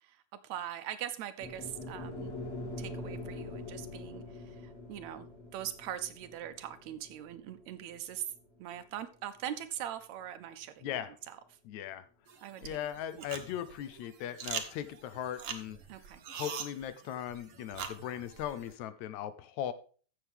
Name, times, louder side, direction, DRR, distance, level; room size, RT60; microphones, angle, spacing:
voice 1, 0.0-2.3 2.8-5.3 5.5-8.3 8.6-11.4 12.4-12.8 13.1-13.2 15.9-16.2, right 11 dB, 75° right, 11 dB, 1.8 m, -42 dB
sound 1, 1.4-9.6, left 2 dB, 30° left, 3.1 m, -44 dB
voice 2, 11.7-12.0 12.6-15.8 16.3-19.7, left 10 dB, 75° left, 13 dB, 1.9 m, -38 dB
sound 2, 12.3-18.7, right 7 dB, 55° right, 1.6 m, -43 dB
14.5 x 6.8 x 3.5 m, 0.39 s
omnidirectional pair, 3.5 m